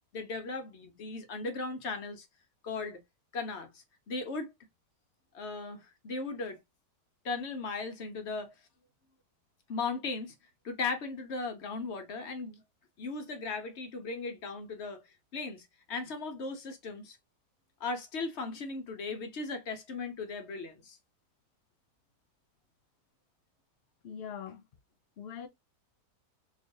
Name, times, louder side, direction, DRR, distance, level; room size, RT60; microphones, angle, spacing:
voice 1, 0.1-2.3 2.6-3.0 3.3-4.5 5.3-6.6 7.2-8.5 9.7-10.3 10.6-12.6 13.0-15.0 15.3-17.2 17.8-21.0, left 3 dB, 50° left, 1.0 m, -37 dB
voice 2, 24.0-24.6 25.2-25.5, left 8 dB, 80° left, 0.5 m, -42 dB
4.0 x 3.1 x 2.6 m
omnidirectional pair, 1.9 m